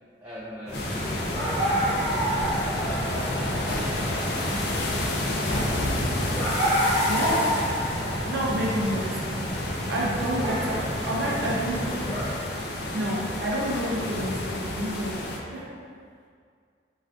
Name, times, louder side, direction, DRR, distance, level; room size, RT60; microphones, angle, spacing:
voice 1, 0.2-2.5 3.1-6.0, equal, 15° right, -10 dB, 0.4 m, -43 dB
sound 1, 0.7-15.4, left 1 dB, 60° left, 0.4 m, -31 dB
sound 2, 0.7-12.3, equal, 35° left, 1.0 m, -29 dB
voice 2, 7.0-7.6 8.3-11.9 12.9-15.2 15.5-15.7, right 1 dB, 85° right, -3 dB, 0.6 m, -29 dB
2.6 x 2.3 x 3.3 m, 2.1 s
head